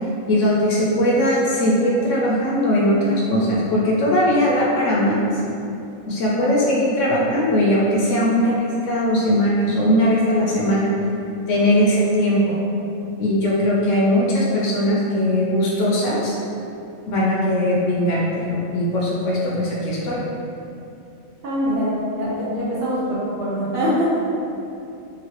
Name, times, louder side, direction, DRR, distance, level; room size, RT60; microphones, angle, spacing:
voice 1, 0.3-5.4 6.1-10.9 11.5-12.6 13.2-16.3 17.1-20.2, equal, 70° left, -5 dB, 0.9 m, -19 dB
voice 2, 6.4-6.7 21.4-24.2, equal, 55° right, -10 dB, 0.9 m, -23 dB
3.0 x 2.6 x 2.8 m, 2.7 s
omnidirectional pair, 1.4 m